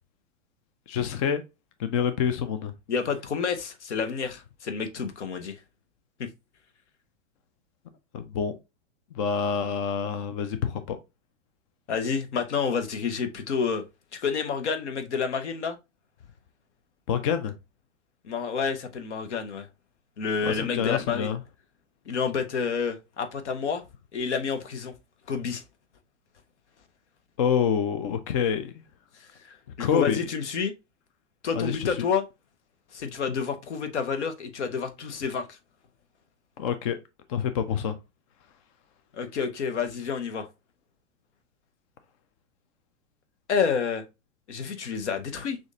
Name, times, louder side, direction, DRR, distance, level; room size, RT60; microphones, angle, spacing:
voice 1, 0.9-1.4 1.8-2.7 8.1-8.5 9.1-11.0 17.1-17.5 20.4-21.4 27.4-28.7 29.8-30.2 31.5-32.0 36.6-37.0 37.3-38.0, left 7 dB, 30° left, 0.4 m, -27 dB
voice 2, 2.9-5.6 6.2-6.3 11.9-13.8 14.1-15.8 18.2-19.7 20.2-21.3 22.1-23.8 24.1-24.9 25.3-25.6 29.4-30.7 31.4-32.2 32.9-35.6 39.1-40.5 43.5-44.0 44.5-45.6, left 6 dB, 65° left, 1.0 m, -29 dB
6.1 x 2.5 x 2.7 m
figure-of-eight pair, 105°, 37 cm